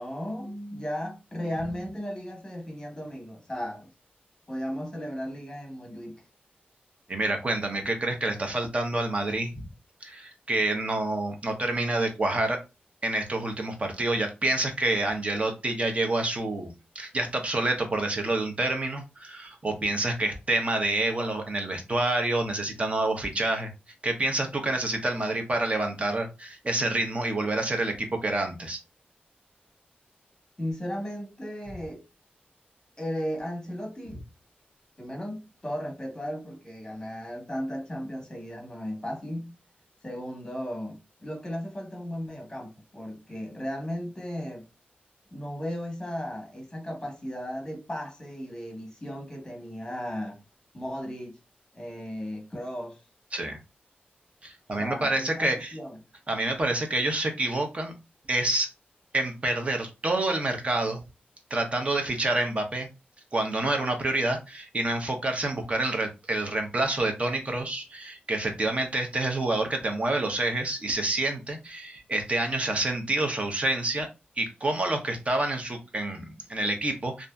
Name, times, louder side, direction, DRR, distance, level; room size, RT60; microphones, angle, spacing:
voice 1, 0.0-3.9 4.5-6.2 30.6-32.0 33.0-34.2 35.0-39.5 40.0-44.6 45.3-50.4 50.7-51.4 51.7-53.0 54.8-56.0, equal, 20° left, 1.0 m, -35 dB
voice 2, 7.1-9.7 10.0-12.6 13.0-23.7 24.0-28.8 53.3-53.6 54.4-55.7 56.3-57.9 58.3-58.7 59.1-61.0 61.5-62.9 63.3-74.1 74.4-77.3, right 2 dB, 35° right, 0.7 m, -28 dB
2.6 x 2.5 x 2.2 m
wide cardioid pair, 95°, 4 cm